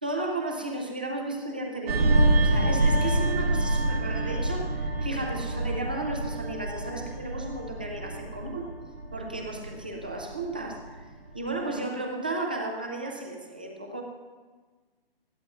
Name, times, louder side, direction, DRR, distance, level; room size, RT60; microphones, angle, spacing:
voice 1, 0.0-2.1 2.4-8.7 9.1-10.8 11.3-14.0, right 2 dB, 10° right, 1 dB, 0.3 m, -34 dB
sound 1, 1.9-10.9 11.3-11.5, right 2 dB, 85° right, 1.7 m, -27 dB
19.5 x 13.5 x 2.3 m, 1.4 s
hypercardioid pair, 150°, 30 cm